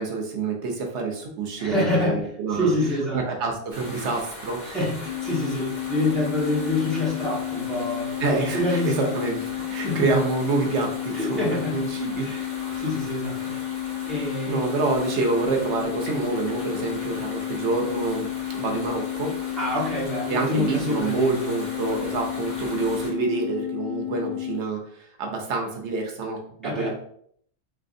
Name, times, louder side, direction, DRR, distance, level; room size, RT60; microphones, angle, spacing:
voice 1, 0.0-2.7 3.1-4.6 8.2-9.4 9.7-11.4 11.7-12.3 12.6-12.9 14.5-18.2 18.5-19.3 20.3-26.9, right 3 dB, 80° right, 2 dB, 1.0 m, -27 dB
voice 2, 1.6-2.2 2.5-3.2 4.6-8.1 8.5-9.1 9.8-10.0 11.1-11.8 12.2-12.4 12.8-14.6 19.6-21.5 26.6-26.9, left 2 dB, ahead, -7 dB, 1.2 m, -27 dB
sound 1, 3.7-23.1, equal, 40° left, 1.2 m, -40 dB
sound 2, 5.1-24.6, left 14 dB, 85° left, 0.9 m, -32 dB
3.3 x 3.2 x 2.6 m, 0.64 s
omnidirectional pair, 1.1 m